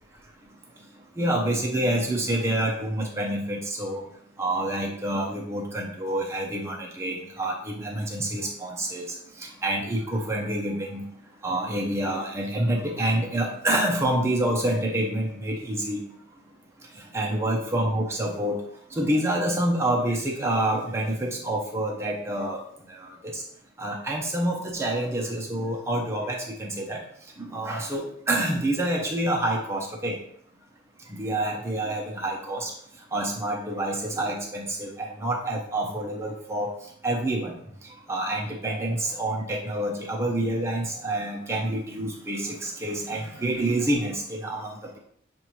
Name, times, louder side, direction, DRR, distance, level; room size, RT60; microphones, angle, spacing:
voice 1, 1.2-4.0 4.4-11.0 11.4-16.0 17.1-18.6 18.9-22.6 22.9-23.4 23.8-27.0 27.4-30.2 31.1-32.7 33.1-36.7 37.0-37.5 38.1-45.0, right 1 dB, 15° right, -1 dB, 0.7 m, -27 dB
6.8 x 2.6 x 3.0 m, 0.65 s
head